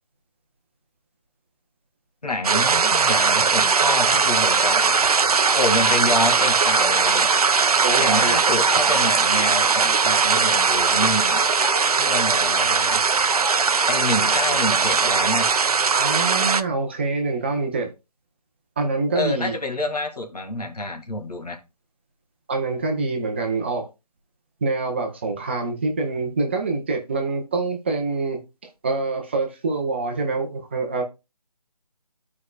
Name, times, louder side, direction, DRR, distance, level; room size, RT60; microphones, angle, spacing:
voice 1, 2.2-5.0 5.5-7.3 8.0-11.4 12.0-13.0 13.9-15.5 19.1-21.6, left 2 dB, 80° left, 2.0 m, -27 dB
sound 1, 2.4-16.6, right 5 dB, 70° right, 0.6 m, -19 dB
sound 2, 3.5-15.0, left 3 dB, 40° left, 1.2 m, -35 dB
sound 3, 7.0-9.5, left 2 dB, 20° left, 1.5 m, -43 dB
voice 2, 7.8-8.5 15.9-17.9 18.8-19.6 22.5-23.9 24.6-28.4 28.8-31.0, right 3 dB, 15° right, 0.7 m, -25 dB
13.5 x 4.8 x 2.3 m
figure-of-eight pair, 160°, 20 cm